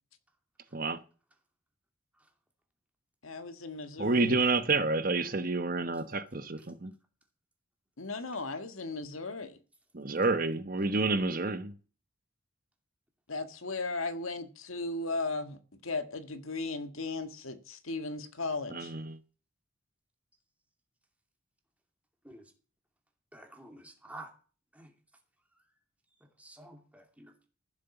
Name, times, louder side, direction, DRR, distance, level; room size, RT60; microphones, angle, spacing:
voice 1, 3.2-4.4 8.0-9.6 13.3-18.9, left 3 dB, 85° left, 1.7 m, -36 dB
voice 2, 4.0-6.9 9.9-11.7 18.7-19.2, right 3 dB, 45° right, 1.0 m, -29 dB
voice 3, 23.3-24.3 24.7-24.9 26.4-27.3, right 2 dB, 5° right, 2.5 m, -49 dB
14.5 x 7.7 x 7.1 m
head